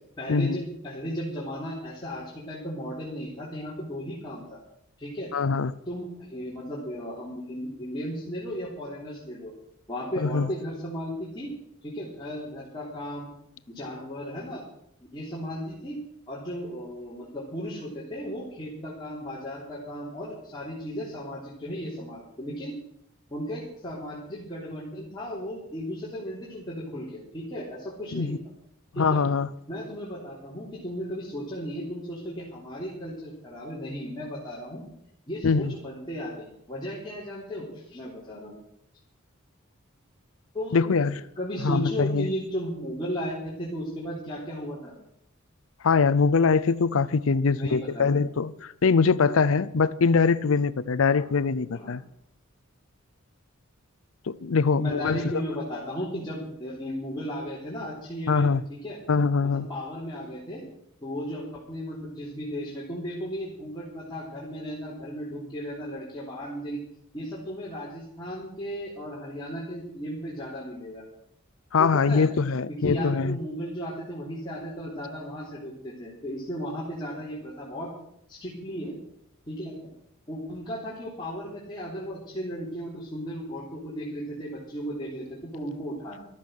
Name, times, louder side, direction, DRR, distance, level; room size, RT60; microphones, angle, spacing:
voice 1, 0.2-4.6 5.0-5.3 5.9-9.5 9.9-11.5 11.8-13.3 13.7-14.6 15.1-16.0 16.3-22.7 23.3-28.3 28.9-29.2 29.7-34.8 35.3-38.6 40.5-40.9 41.4-44.9 47.5-48.2 51.1-51.3 51.7-51.9 54.7-59.0 59.4-60.6 61.0-66.8 67.1-71.0 71.8-72.2 72.8-77.9 78.3-78.9 79.5-79.7 80.3-86.3, equal, 20° left, 3.6 m, -35 dB
voice 2, 5.3-5.7 10.2-10.5 28.1-28.4 29.0-29.5 35.4-35.7 40.7-41.2 41.6-42.3 45.8-52.0 54.3-55.2 58.3-58.6 59.1-59.7 71.7-73.4, left 5 dB, 70° left, 0.5 m, -23 dB
14.5 x 12.5 x 6.5 m
head